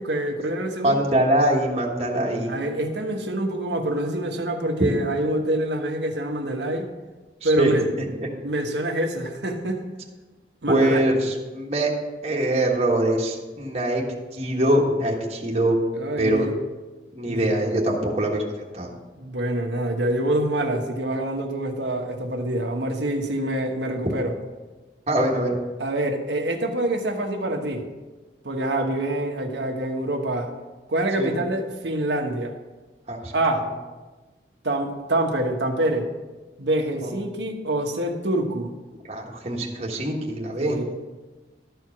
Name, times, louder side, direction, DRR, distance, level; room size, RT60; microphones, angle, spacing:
voice 1, 0.0-1.0 2.5-6.9 7.4-7.9 8.4-9.8 10.6-11.0 16.0-16.5 17.2-17.5 19.2-24.3 25.8-27.8 28.4-30.5 30.9-32.5 33.3-33.6 34.6-36.1 36.6-38.7 40.6-40.9, right 1 dB, 85° right, 4 dB, 1.2 m, -26 dB
voice 2, 0.8-2.5 7.4-7.8 10.7-11.9 12.2-14.0 14.3-15.8 16.2-16.5 17.1-18.4 18.7-18.9 25.1-25.6 31.2-31.3 33.1-33.3 37.0-37.1 39.1-40.8, right 1 dB, 35° right, -2 dB, 1.4 m, -23 dB
12.5 x 4.6 x 6.0 m, 1.2 s
head